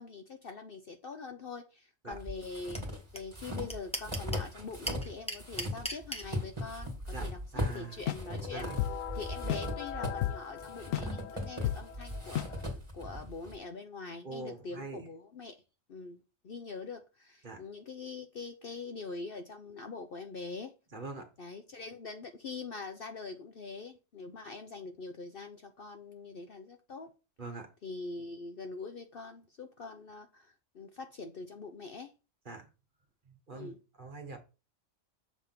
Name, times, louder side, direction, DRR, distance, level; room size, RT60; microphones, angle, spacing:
voice 1, 0.0-2.8 3.1-15.5 15.9-20.7 21.4-27.1 27.8-32.1 33.5-33.8, left 4 dB, 50° left, 0.8 m, -44 dB
sound 1, 2.1-5.1 5.4-13.6, equal, 20° right, 2.2 m, -39 dB
sound 2, 2.7-2.8 3.2-3.3 3.4-4.5 4.9-6.2, equal, 5° left, 1.0 m, -35 dB
voice 2, 7.5-8.0 8.5-8.8 14.2-15.0 17.4-17.6 20.9-21.3 27.4-27.7 32.5-32.7 33.3-33.7 34.0-34.4, right 3 dB, 40° right, 1.4 m, -43 dB
sound 3, 8.1-12.6, left 12 dB, 75° left, 1.0 m, -36 dB
7.2 x 3.5 x 5.8 m
omnidirectional pair, 1.4 m